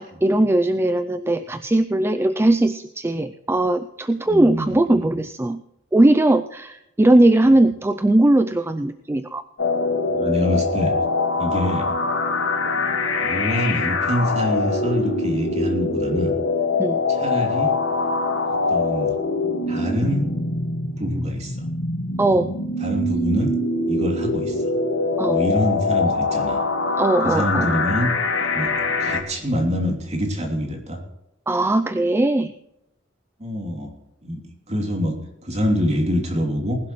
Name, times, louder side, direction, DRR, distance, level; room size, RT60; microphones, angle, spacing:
voice 1, 0.0-5.6 5.9-9.4 16.8-17.0 22.2-22.5 25.2-25.4 27.0-27.7 31.5-32.5, right 1 dB, 10° right, 11 dB, 0.4 m, -19 dB
voice 2, 4.3-5.1 10.1-10.9 11.4-11.9 13.2-16.3 17.1-17.7 18.7-19.1 19.7-20.3 21.0-21.6 22.8-23.5 23.9-24.7 25.3-26.6 27.2-28.1 28.5-28.7 29.0-31.0 33.4-33.9 34.2-34.4 34.7-36.8, equal, 35° right, 2 dB, 2.9 m, -25 dB
sound 1, 9.6-29.2, left 3 dB, 85° left, 1.9 m, -23 dB
20.0 x 11.5 x 3.2 m, 0.85 s
head